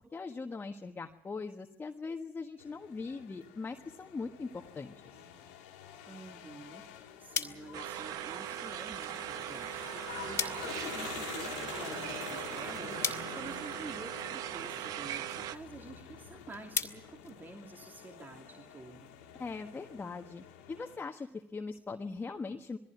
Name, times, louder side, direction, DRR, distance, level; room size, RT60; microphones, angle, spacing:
voice 1, 0.1-4.9 19.4-22.8, left 4 dB, 30° left, 3 dB, 1.5 m, -40 dB
sound 1, 2.6-21.0, left 8 dB, 85° left, 2.2 m, -47 dB
voice 2, 6.1-19.1, right 3 dB, 30° right, 3 dB, 2.7 m, -49 dB
sound 2, 7.3-18.1, left 7 dB, 45° left, 2.2 m, -43 dB
sound 3, 7.7-15.6, right 12 dB, 70° right, 0.9 m, -40 dB
20.5 x 15.5 x 9.5 m, 0.82 s
hypercardioid pair, 65°, 7 cm